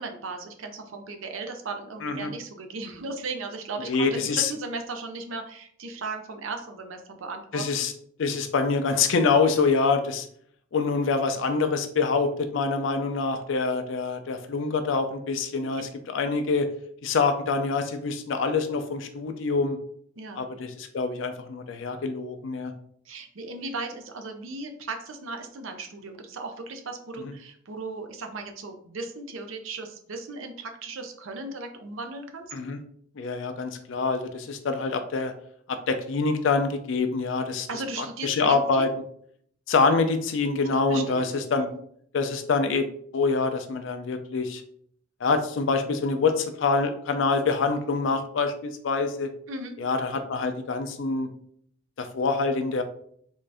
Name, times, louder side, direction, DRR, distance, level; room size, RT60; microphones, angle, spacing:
voice 1, 0.0-7.6 20.2-20.5 23.1-32.5 37.7-38.9 40.9-41.8 49.5-49.8, right 3 dB, 75° right, 5 dB, 0.6 m, -36 dB
voice 2, 2.0-2.3 3.8-4.5 7.5-7.9 8.2-10.3 10.7-16.7 17.0-19.8 20.4-22.7 27.2-27.3 32.5-32.8 33.2-35.3 35.7-37.7 38.0-38.9 39.7-41.7 42.1-42.9 43.1-44.6 45.2-49.3 49.8-51.3 52.0-52.8, left 4 dB, 65° left, 7 dB, 0.4 m, -25 dB
3.7 x 2.5 x 3.3 m, 0.63 s
head